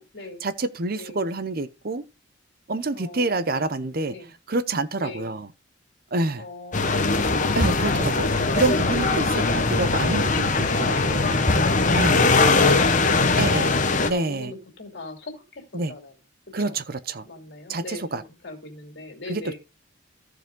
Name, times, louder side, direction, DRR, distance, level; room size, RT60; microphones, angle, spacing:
voice 1, 0.4-2.0 2.7-5.5 6.1-6.5 7.6-11.4 11.9-12.4 13.4-13.7 14.1-14.5 15.7-15.9 16.5-17.3 17.7-18.2 19.3-19.6, right 3 dB, 50° right, 0.7 m, -27 dB
voice 2, 0.9-1.2 2.9-3.7 4.0-4.3 5.0-5.3 6.4-8.6 9.3-9.7 10.6-11.2 12.0-15.6 15.9-16.1 16.6-16.8 17.2-19.6, left 3 dB, 60° left, 2.8 m, -39 dB
sound 1, 6.7-14.1, left 3 dB, 40° left, 0.9 m, -21 dB
14.5 x 4.9 x 3.7 m
head